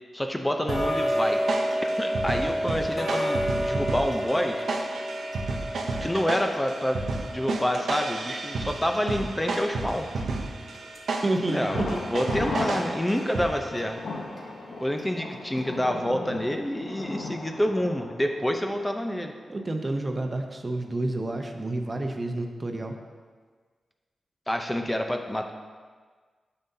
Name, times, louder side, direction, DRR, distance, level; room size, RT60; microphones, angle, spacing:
voice 1, 0.1-1.4 2.0-4.7 6.0-7.0 7.3-10.1 11.5-14.0 14.8-19.3 24.5-25.5, equal, 10° left, 4 dB, 0.6 m, -28 dB
Tick-tock, 0.7-11.5 11.9-12.0 12.6-12.7 13.2-13.3 13.8-13.9 14.4-14.5 15.0-15.1 15.6-15.7, equal, 45° left, 1.5 m, -31 dB
sound 1, 0.7-13.8, right 3 dB, 75° right, 0.7 m, -33 dB
voice 2, 11.2-12.0 19.5-23.0, right 2 dB, 35° right, 4 dB, 0.8 m, -29 dB
Thunder, 11.7-19.4 19.7-19.8 20.3-20.4, left 2 dB, 75° left, 1.0 m, -36 dB
9.1 x 6.9 x 2.8 m, 1.5 s
cardioid pair, 60°, 0 cm